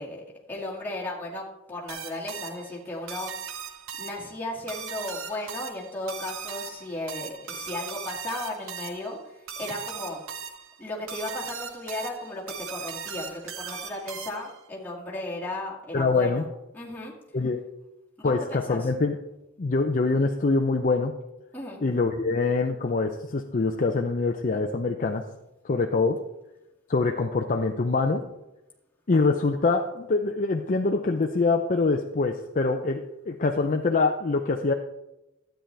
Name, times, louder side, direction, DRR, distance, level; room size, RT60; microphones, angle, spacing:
voice 1, 0.0-3.5 4.0-10.2 10.8-16.5 16.7-17.1 18.2-18.9 21.5-21.8, left 2 dB, 10° left, -6 dB, 2.1 m, -35 dB
sound 1, 1.9-14.6, right 7 dB, 80° right, 0.9 m, -39 dB
voice 2, 15.9-16.4 17.3-17.6 18.2-19.2 19.6-21.2 21.8-25.3 25.6-26.2 26.9-28.3 29.1-34.7, left 3 dB, 40° left, 3 dB, 0.5 m, -24 dB
12.5 x 9.0 x 3.3 m, 0.96 s
head